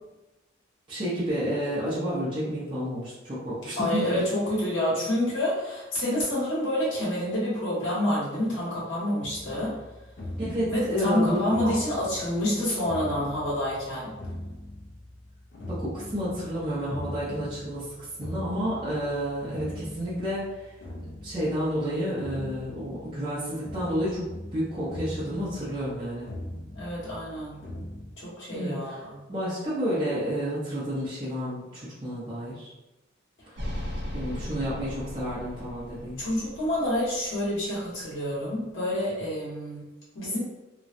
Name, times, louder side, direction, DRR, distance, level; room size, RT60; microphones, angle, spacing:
voice 1, 0.9-4.2 10.4-11.7 12.2-12.3 15.7-17.8 18.2-20.5 21.2-26.3 28.5-29.0 29.3-32.7 34.1-36.2, equal, 25° right, -11 dB, 0.8 m, -30 dB
voice 2, 3.8-9.8 10.7-14.1 26.7-27.6 28.2-29.2 36.2-39.8 40.1-40.4, left 1 dB, 80° left, -7 dB, 1.4 m, -28 dB
sound 1, 9.2-28.1, left 1 dB, 60° left, 0.5 m, -41 dB
sound 2, 33.6-37.8, left 1 dB, 60° right, 0.7 m, -37 dB
3.0 x 2.2 x 2.6 m, 1.0 s
head